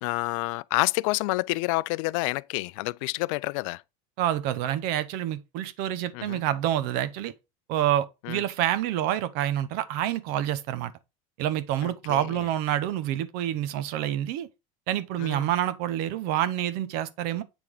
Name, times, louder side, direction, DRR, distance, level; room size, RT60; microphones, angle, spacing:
voice 1, 0.0-3.8 6.1-6.4 8.2-8.4 11.8-12.5 15.2-15.5, left 22 dB, 70° left, 0.4 m, -29 dB
voice 2, 4.2-7.3 7.7-10.9 11.4-14.5 14.9-17.4, right 12 dB, 65° right, 1.0 m, -27 dB
8.2 x 3.5 x 4.8 m
supercardioid pair, 100°, 17 cm